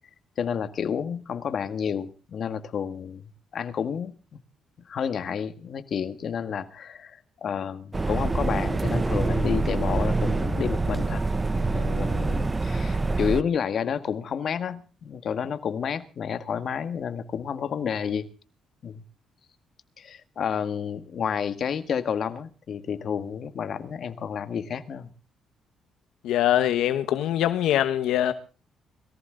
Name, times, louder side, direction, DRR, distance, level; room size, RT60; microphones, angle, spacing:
voice 1, 0.4-3.2 3.5-4.1 4.8-11.2 11.5-18.3 18.8-19.0 20.0-25.1, left 7 dB, 55° left, 1.7 m, -30 dB
sound 1, 7.9-13.4, right 3 dB, 25° right, 0.8 m, -25 dB
voice 2, 26.2-28.3, left 12 dB, 85° left, 1.1 m, -23 dB
22.0 x 14.5 x 3.9 m
cardioid pair, 90°, 0 cm